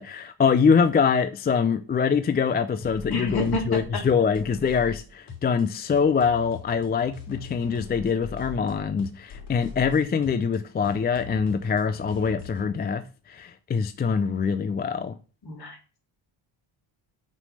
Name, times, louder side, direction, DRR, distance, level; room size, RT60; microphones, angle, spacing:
voice 1, 0.0-13.0 13.3-15.2, left 6 dB, 25° left, 0.3 m, -24 dB
sound 1, 2.8-12.7, left 5 dB, 70° left, 2.9 m, -41 dB
voice 2, 3.1-3.8 15.4-15.8, left 3 dB, 50° left, 2.4 m, -28 dB
6.2 x 3.3 x 5.4 m
cardioid pair, 100°, 48 cm